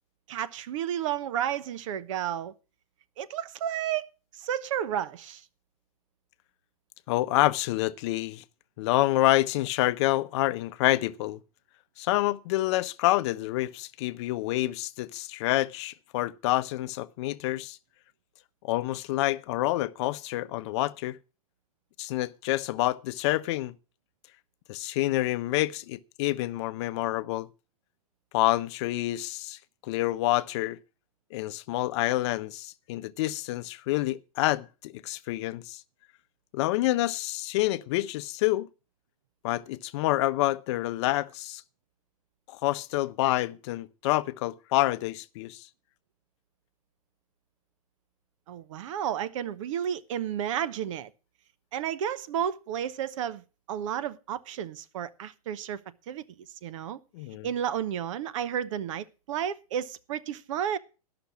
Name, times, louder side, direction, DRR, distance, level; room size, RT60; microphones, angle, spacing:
voice 1, 0.3-2.5 3.2-4.1 4.3-5.4 48.5-51.1 51.7-55.8 56.1-56.2 56.6-57.0 57.4-60.8, right 9 dB, 60° right, 0.9 m, -32 dB
voice 2, 7.1-8.4 8.8-11.4 12.0-17.8 18.6-21.2 22.0-23.7 24.7-27.5 28.3-30.8 31.3-35.8 36.5-38.7 39.4-41.6 42.5-45.7 57.1-57.5, left 17 dB, 50° left, 0.6 m, -28 dB
13.0 x 6.0 x 7.1 m
hypercardioid pair, 125°, 18 cm